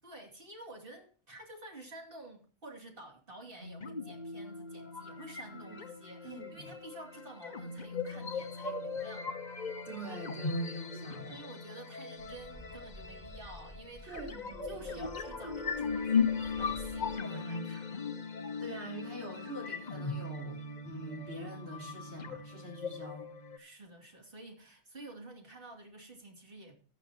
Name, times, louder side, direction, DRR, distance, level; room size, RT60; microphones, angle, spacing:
voice 1, 0.0-9.4 11.3-17.9 23.6-26.8, right 2 dB, 50° right, 2.8 m, -50 dB
sound 1, 3.6-23.6, left 5 dB, 40° left, 1.1 m, -38 dB
voice 2, 6.2-6.7 9.8-11.4 14.1-15.1 18.6-23.3, equal, 70° right, 4.2 m, -45 dB
sound 2, 12.2-17.1, left 1 dB, 5° right, 3.3 m, -51 dB
14.5 x 10.0 x 2.8 m
omnidirectional pair, 1.2 m